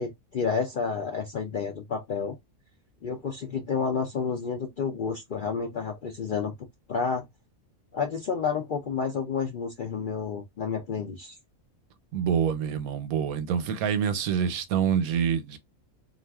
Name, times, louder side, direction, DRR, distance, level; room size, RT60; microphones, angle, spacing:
voice 1, 0.0-2.3 3.0-6.5 6.9-7.3 7.9-11.3, left 5 dB, 65° left, 0.5 m, -30 dB
voice 2, 12.1-15.6, right 7 dB, 90° right, 1.1 m, -26 dB
2.4 x 2.4 x 3.4 m
omnidirectional pair, 1.5 m